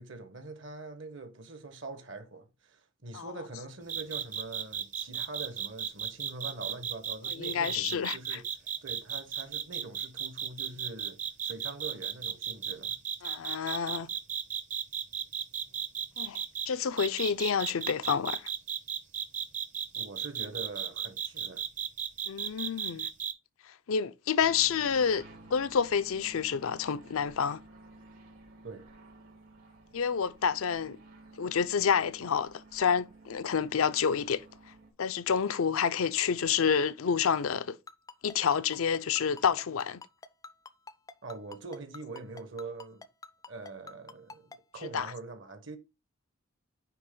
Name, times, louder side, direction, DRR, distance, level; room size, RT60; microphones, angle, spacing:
voice 1, 0.0-8.5 8.8-13.0 19.9-21.6 28.6-28.9 41.2-43.0 43.5-45.8, right 3 dB, 60° right, 1.2 m, -44 dB
sound 1, 3.9-16.7 17.0-23.3, right 9 dB, 35° right, 0.7 m, -34 dB
voice 2, 7.3-8.4 13.2-14.1 16.2-18.4 22.3-23.1 23.9-25.3 25.5-27.6 29.9-31.0 31.4-34.4 35.0-37.8 38.2-40.0 44.9-45.1, left 7 dB, 80° left, 0.5 m, -29 dB
sound 2, 24.4-34.9, right 2 dB, 80° right, 3.4 m, -53 dB
Ringtone, 37.9-44.6, left 4 dB, 15° left, 0.3 m, -46 dB
9.3 x 3.4 x 3.7 m
head